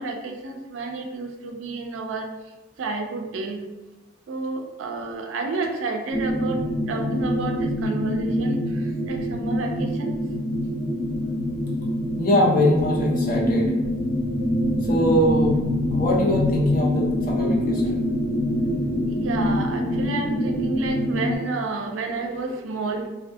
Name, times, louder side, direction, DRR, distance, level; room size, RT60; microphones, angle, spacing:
voice 1, 0.0-2.3 2.8-3.6 4.3-6.6 6.9-8.6 9.1-10.1 19.1-23.1, right 3 dB, 70° right, 4 dB, 0.3 m, -30 dB
sound 1, 6.1-21.4, left 1 dB, 80° left, 0.8 m, -25 dB
voice 2, 12.2-13.7 14.9-15.6 15.9-18.0, equal, 45° left, -3 dB, 0.6 m, -22 dB
2.3 x 2.2 x 2.5 m, 1.1 s
head